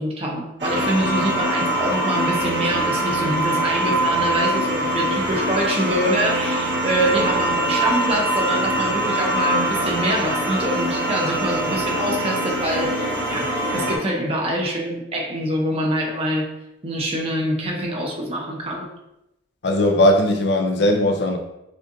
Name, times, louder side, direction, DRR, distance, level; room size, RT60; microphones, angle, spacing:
voice 1, 0.0-16.5 16.8-18.9, right 1 dB, 30° right, -1 dB, 0.7 m, -25 dB
sound 1, 0.6-14.0, right 1 dB, 60° right, 1.0 m, -23 dB
voice 2, 19.6-21.4, left 1 dB, 60° left, 3 dB, 0.5 m, -18 dB
6.4 x 2.5 x 2.6 m, 0.88 s
head